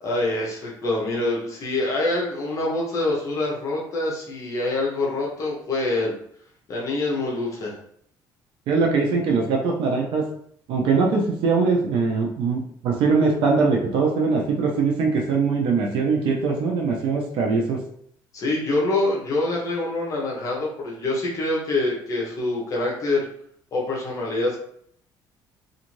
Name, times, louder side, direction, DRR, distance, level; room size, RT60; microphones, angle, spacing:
voice 1, 0.0-6.1 6.7-7.8 18.3-23.3 23.7-24.6, left 2 dB, 40° left, -3 dB, 0.8 m, -25 dB
voice 2, 8.7-10.2 10.7-17.8, right 4 dB, 65° right, 0 dB, 0.6 m, -22 dB
2.6 x 2.4 x 3.0 m, 0.65 s
cardioid pair, 155°, 9 cm